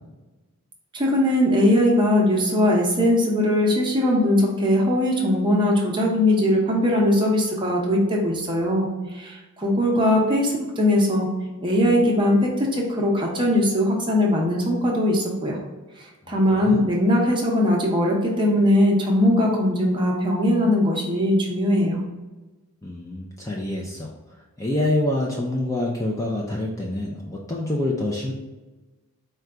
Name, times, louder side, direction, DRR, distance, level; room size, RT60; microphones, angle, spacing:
voice 1, 0.9-8.9 9.1-11.3 11.6-15.6 16.3-22.0, left 1 dB, 20° right, -2 dB, 0.7 m, -20 dB
voice 2, 16.3-16.8 22.8-24.1 24.6-28.3, left 1 dB, 15° left, -2 dB, 0.4 m, -26 dB
4.5 x 2.3 x 3.7 m, 1.2 s
head